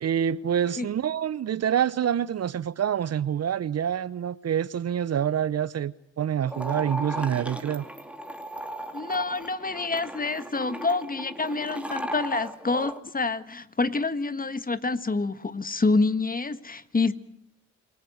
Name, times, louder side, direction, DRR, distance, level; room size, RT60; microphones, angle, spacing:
voice 1, 0.0-7.8, right 9 dB, 45° right, 0.8 m, -27 dB
sound 1, 6.5-13.0, equal, 5° right, 2.6 m, -36 dB
voice 2, 8.9-17.1, left 3 dB, 25° left, 1.6 m, -27 dB
28.0 x 18.0 x 7.9 m
supercardioid pair, 55°, 34 cm